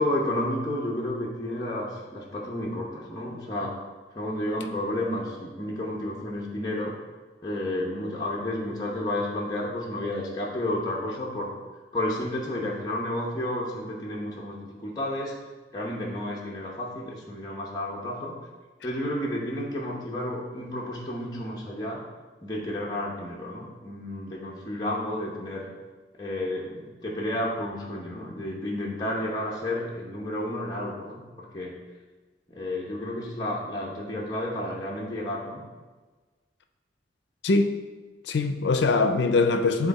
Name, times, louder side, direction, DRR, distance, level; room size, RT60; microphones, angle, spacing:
voice 1, 0.0-3.7 4.1-6.9 7.4-11.5 11.9-15.3 15.7-18.4 18.8-22.0 22.4-25.7 26.2-31.8 32.5-35.6, left 1 dB, 20° left, 0.9 m, -31 dB
voice 2, 37.4-37.8 38.2-39.9, left 3 dB, 75° left, 0.5 m, -22 dB
9.2 x 3.5 x 4.1 m
head